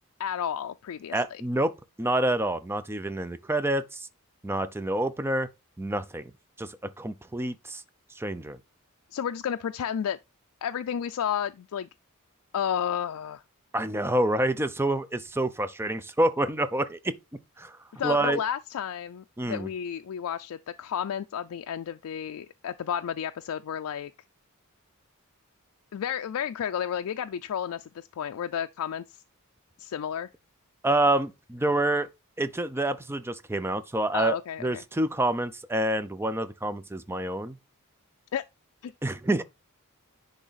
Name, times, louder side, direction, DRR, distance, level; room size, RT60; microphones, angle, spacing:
voice 1, 0.2-1.4 9.1-10.2 10.6-11.9 12.5-13.4 17.9-24.1 25.9-29.2 29.8-30.3 34.1-34.8 38.3-38.4 38.8-38.9, left 8 dB, 75° left, 0.4 m, -32 dB
voice 2, 1.1-1.7 2.0-4.1 4.4-5.5 5.8-6.3 6.6-7.8 8.1-8.6 13.7-17.2 17.6-17.8 18.0-18.4 19.4-19.7 30.8-32.1 32.4-34.4 34.6-37.6 39.0-39.4, right 1 dB, 10° right, 0.5 m, -27 dB
10.0 x 3.4 x 4.0 m
head